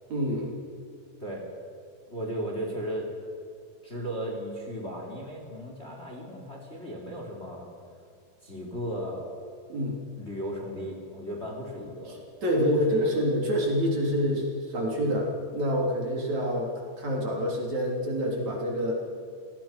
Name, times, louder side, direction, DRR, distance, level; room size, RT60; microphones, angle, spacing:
voice 1, 0.1-0.6 9.7-10.0 12.4-16.7 17.0-18.9, equal, 50° right, -1 dB, 4.6 m, -27 dB
voice 2, 2.1-3.1 3.8-7.7 8.4-9.3 10.2-12.2 12.6-13.2, equal, 20° left, 0 dB, 3.6 m, -35 dB
29.0 x 18.0 x 6.0 m, 2.4 s
omnidirectional pair, 4.1 m